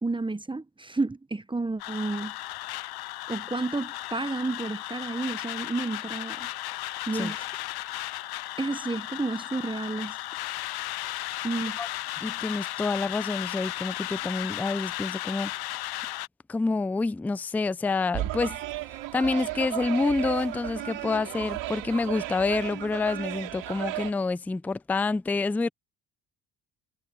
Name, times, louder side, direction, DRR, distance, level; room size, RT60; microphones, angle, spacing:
voice 1, 0.0-2.3 3.3-6.5 7.1-7.5 8.6-10.2 11.4-11.8, right 3 dB, 10° right, 0.8 m, -31 dB
sound 1, 1.8-16.3, left 17 dB, 60° left, 0.5 m, -35 dB
voice 2, 12.2-15.5 16.5-18.6 19.1-25.7, left 3 dB, 5° left, 0.3 m, -28 dB
sound 2, 18.1-24.1, right 15 dB, 85° right, 2.7 m, -34 dB
cardioid pair, 95°, 44 cm